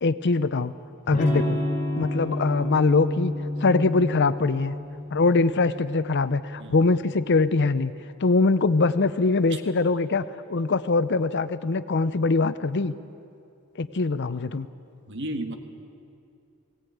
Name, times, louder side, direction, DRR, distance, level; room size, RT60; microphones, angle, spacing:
voice 1, 0.0-0.7 1.1-1.6 2.0-3.3 3.6-4.8 5.1-7.9 8.2-12.9 13.8-14.7, left 3 dB, 50° left, 14 dB, 0.6 m, -23 dB
Electric guitar / Strum, 1.1-6.8, left 1 dB, 35° left, 5.6 m, -30 dB
voice 2, 15.1-15.6, right 1 dB, 55° right, 6 dB, 1.6 m, -33 dB
18.5 x 18.0 x 9.3 m, 2.5 s
head